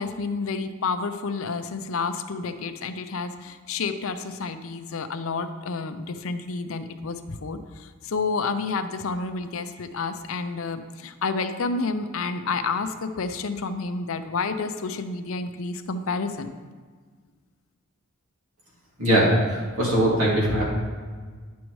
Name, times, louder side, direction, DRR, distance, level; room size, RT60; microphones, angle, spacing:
voice 1, 0.0-16.5, left 4 dB, 70° left, 9 dB, 0.5 m, -30 dB
voice 2, 19.0-20.6, right 1 dB, 80° right, -5 dB, 2.4 m, -21 dB
10.0 x 6.2 x 3.1 m, 1.5 s
head